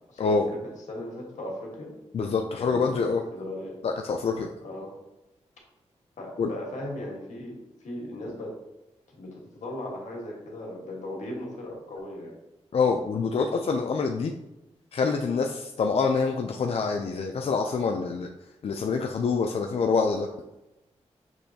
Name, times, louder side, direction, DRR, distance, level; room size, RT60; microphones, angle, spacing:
voice 1, 0.1-0.4 0.9-1.9 2.5-2.8 3.3-3.8 4.6-4.9 6.2-7.5 7.8-8.5 9.1-12.4, left 1 dB, 80° left, -1 dB, 1.3 m, -37 dB
voice 2, 2.1-3.2 3.8-4.5 6.4-6.5 12.7-14.3 14.9-18.3 18.6-20.3, left 4 dB, 55° left, 3 dB, 0.4 m, -26 dB
6.0 x 3.1 x 2.7 m, 0.96 s
cardioid pair, 70°, 12 cm